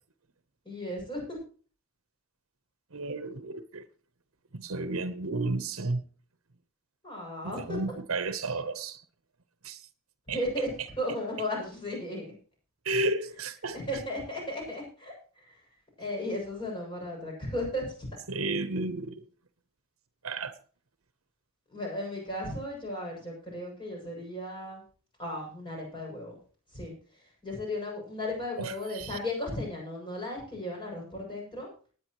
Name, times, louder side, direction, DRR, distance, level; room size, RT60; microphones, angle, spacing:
voice 1, 0.6-1.4 7.0-7.8 10.3-10.7 11.0-12.2 13.7-18.1 21.7-24.8 25.2-26.4 26.7-31.7, left 1 dB, 25° left, 7.2 m, -35 dB
voice 2, 2.9-3.9 4.5-6.0 7.4-9.0 9.6-9.8 10.3-10.4 12.8-13.8 18.3-19.3 20.2-20.5 28.6-29.2, right 2 dB, 80° right, 1.0 m, -32 dB
19.5 x 9.7 x 3.1 m
head